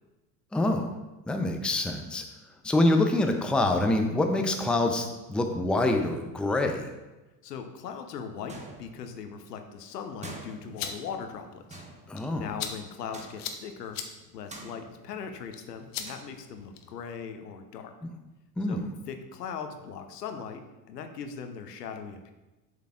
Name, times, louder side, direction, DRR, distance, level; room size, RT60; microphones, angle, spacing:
voice 1, 0.5-0.9 1.3-2.2 2.6-6.9 12.1-12.5 18.0-18.1 18.6-18.9, left 2 dB, ahead, 4 dB, 0.5 m, -26 dB
voice 2, 7.4-11.8 12.4-14.0 14.3-17.9 18.7-20.6 20.9-22.3, left 6 dB, 75° left, 7 dB, 0.9 m, -39 dB
sound 1, 8.5-9.3 10.2-11.3 11.7-12.6 13.1-13.7 14.5-15.3 16.1-16.2, right 2 dB, 15° right, 1.1 m, -46 dB
sound 2, 10.5-17.0, left 7 dB, 45° left, 0.9 m, -42 dB
8.1 x 6.5 x 2.4 m, 1.1 s
figure-of-eight pair, 75°, 48 cm